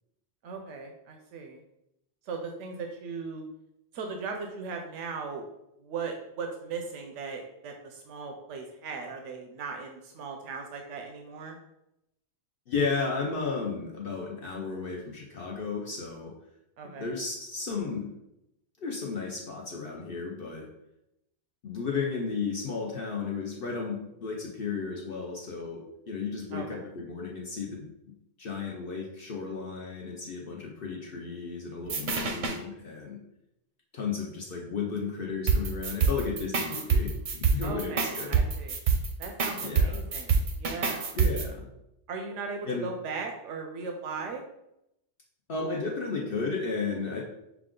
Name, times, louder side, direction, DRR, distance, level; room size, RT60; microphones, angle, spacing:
voice 1, 0.4-1.6 2.3-3.4 3.9-5.5 5.8-11.6 16.8-17.1 26.5-26.8 37.6-38.8 39.2-41.1 42.1-44.4, right 4 dB, 90° right, 3 dB, 0.9 m, -38 dB
voice 2, 12.7-16.3 16.8-18.1 18.8-20.7 21.6-33.2 33.9-37.1 37.5-38.5 39.6-40.0 41.1-41.7 42.7-42.9 45.5-47.2, left 4 dB, 55° left, -1 dB, 0.8 m, -34 dB
sound 1, 31.9-32.6 35.5-41.5, right 5 dB, 50° right, 0.6 m, -26 dB
5.9 x 2.4 x 3.7 m, 0.84 s
omnidirectional pair, 1.2 m